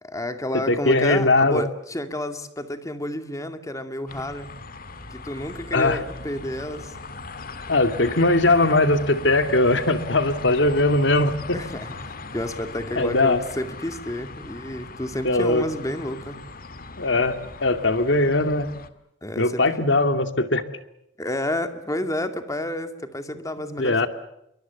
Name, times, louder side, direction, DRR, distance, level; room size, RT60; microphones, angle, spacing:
voice 1, 0.0-4.5 5.1-7.0 11.5-16.4 19.2-19.6 21.2-24.1, left 1 dB, 20° left, 7 dB, 2.3 m, -30 dB
voice 2, 0.7-1.6 5.7-6.0 7.7-11.6 13.0-13.4 15.2-15.6 17.0-18.7 19.4-20.6 23.8-24.1, left 2 dB, 75° left, 8 dB, 2.4 m, -20 dB
sound 1, 4.1-18.9, left 3 dB, 50° left, 2.0 m, -39 dB
28.0 x 24.0 x 7.0 m, 0.82 s
head